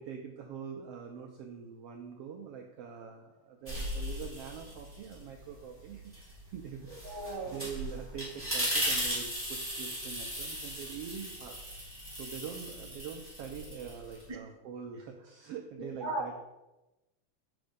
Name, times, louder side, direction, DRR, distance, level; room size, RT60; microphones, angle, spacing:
voice 1, 0.0-11.7 12.2-16.3, right 7 dB, 80° right, 3 dB, 1.3 m, -44 dB
sound 1, 3.7-5.2 5.6-14.3, equal, 5° left, 3.0 m, -37 dB
voice 2, 7.0-7.6 14.3-14.4 16.0-16.4, right 2 dB, 40° right, -1 dB, 0.3 m, -36 dB
7.8 x 6.2 x 5.1 m, 0.99 s
omnidirectional pair, 3.6 m